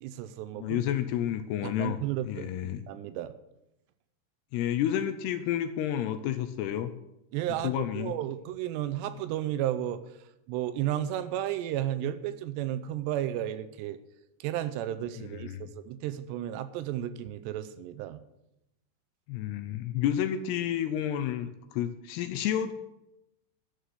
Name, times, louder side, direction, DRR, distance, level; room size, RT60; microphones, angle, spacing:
voice 1, 0.0-0.9 1.6-3.3 7.3-10.0 10.5-14.0 14.4-18.2, right 12 dB, 80° right, 11 dB, 2.7 m, -33 dB
voice 2, 0.6-2.8 4.5-6.9 7.6-8.1 15.2-15.7 19.3-22.7, left 10 dB, 80° left, 10 dB, 2.5 m, -30 dB
11.0 x 6.5 x 9.3 m, 0.88 s
omnidirectional pair, 5.1 m